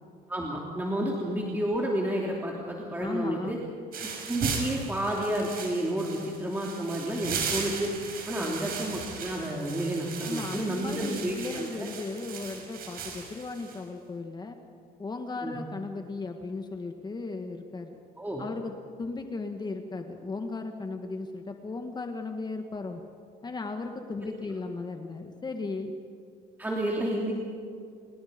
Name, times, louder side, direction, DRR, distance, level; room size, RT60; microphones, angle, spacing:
voice 1, 0.3-3.6 4.0-7.9 8.3-11.9 15.4-15.6 18.2-18.4 24.2-24.3 26.6-27.3, right 1 dB, 10° right, -2 dB, 3.2 m, -31 dB
voice 2, 3.0-3.6 8.3-8.6 10.2-14.6 15.0-18.0 18.4-18.7 19.0-23.0 23.4-25.9, left 3 dB, 25° left, 5 dB, 1.8 m, -36 dB
sound 1, 3.9-13.8, right 5 dB, 60° right, 5.8 m, -37 dB
28.5 x 21.0 x 5.3 m, 2.4 s
cardioid pair, 110°, 17 cm